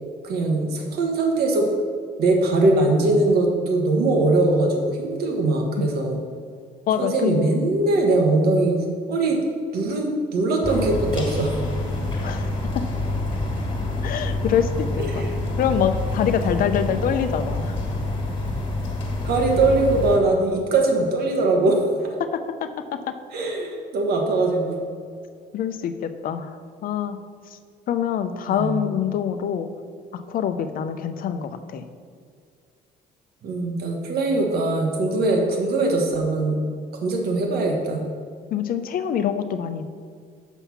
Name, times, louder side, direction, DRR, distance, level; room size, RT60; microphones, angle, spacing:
voice 1, 0.2-1.7 2.2-6.2 7.0-9.4 9.7-11.6 15.0-15.3 16.9-17.0 19.2-22.1 23.3-24.7 28.5-28.8 33.4-36.6 37.0-38.0, right 2 dB, 65° right, 2 dB, 1.5 m, -21 dB
voice 2, 6.9-7.4 12.2-12.5 14.0-15.2 15.6-17.8 22.3-22.7 25.5-26.5 26.8-27.2 27.9-29.7 30.1-31.8 38.5-39.8, left 8 dB, 55° left, 9 dB, 0.6 m, -25 dB
sound 1, 10.6-20.2, left 2 dB, 30° left, 1.9 m, -27 dB
7.1 x 5.6 x 5.7 m, 2.1 s
cardioid pair, 110°, 17 cm